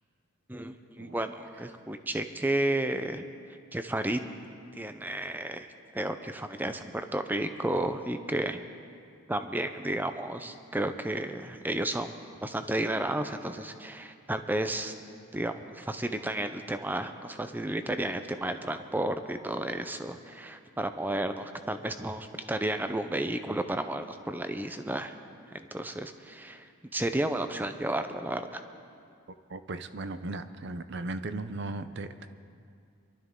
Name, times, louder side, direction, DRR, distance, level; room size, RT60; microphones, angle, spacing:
voice 1, 0.5-3.2 3.7-4.2 4.7-5.7 5.9-8.6 9.3-12.1 12.4-14.9 15.3-25.1 25.5-28.6, right 1 dB, 10° right, 8 dB, 0.5 m, -32 dB
voice 2, 29.5-32.3, right 2 dB, 55° right, 11 dB, 0.6 m, -37 dB
24.0 x 12.5 x 3.7 m, 2.3 s
head